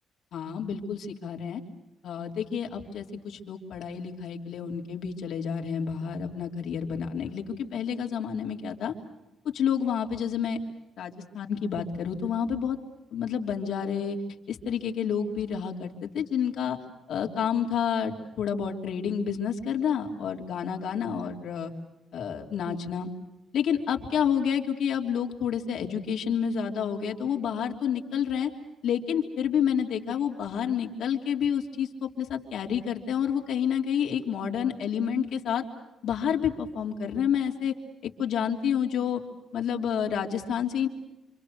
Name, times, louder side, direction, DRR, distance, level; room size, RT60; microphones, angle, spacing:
voice 1, 0.3-1.6 2.0-8.9 9.5-10.6 11.0-12.8 13.1-14.2 14.5-16.8 17.1-21.7 22.1-23.1 23.5-28.5 28.8-35.6 36.0-37.7 38.0-39.2 39.5-40.9, left 8 dB, 70° left, 2 dB, 3.3 m, -29 dB
27.5 x 26.5 x 6.5 m, 0.94 s
cardioid pair, 120°, 0 cm